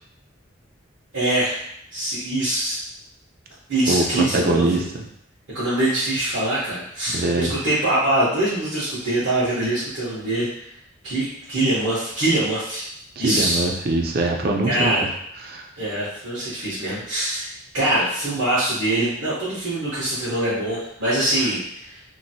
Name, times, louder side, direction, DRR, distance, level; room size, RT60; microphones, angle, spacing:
voice 1, 1.1-1.6 1.9-2.8 3.7-4.9 5.5-10.7 11.0-12.8 13.2-13.6 14.6-15.1 15.8-22.0, right 1 dB, 90° right, -13 dB, 1.2 m, -23 dB
voice 2, 3.9-4.8 7.1-7.6 13.2-15.0 15.4-15.7, right 2 dB, 50° right, 1 dB, 0.5 m, -22 dB
3.0 x 2.6 x 2.7 m, 0.71 s
head